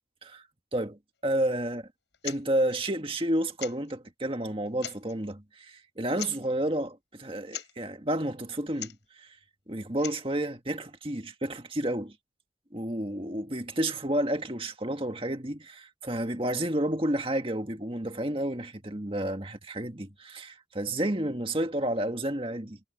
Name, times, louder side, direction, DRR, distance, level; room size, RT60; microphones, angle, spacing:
voice 1, 0.7-1.8 2.2-9.4 9.7-12.1 12.7-22.8, right 1 dB, 30° right, 1.9 m, -31 dB
sound 1, 2.1-2.4 2.7-2.8 3.6-3.9 4.7-5.2 6.1-6.5 7.5-7.7 8.7-9.0 9.8-10.3, left 10 dB, 90° left, 6.2 m, -39 dB
head